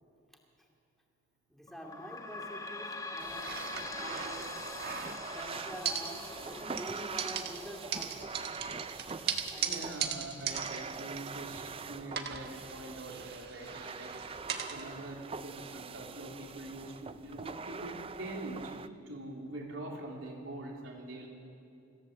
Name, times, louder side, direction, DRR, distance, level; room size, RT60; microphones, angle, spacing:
voice 1, 1.5-3.5 4.0-4.5 5.2-8.4 9.5-9.9, equal, ahead, 0 dB, 2.6 m, -46 dB
sound 1, 1.7-14.8 15.4-15.5 15.8-15.9 16.7-16.8, left 3 dB, 15° left, 1.0 m, -46 dB
sound 2, 3.2-18.9, right 5 dB, 30° right, 0.5 m, -44 dB
sound 3, 3.4-5.4 5.8-6.5 6.8-11.8 12.1-14.8, right 7 dB, 55° right, 1.5 m, -39 dB
voice 2, 9.7-14.1 14.4-18.7 19.1-21.3, right 2 dB, 75° right, -1 dB, 3.7 m, -44 dB
25.0 x 15.0 x 7.6 m, 2.6 s
head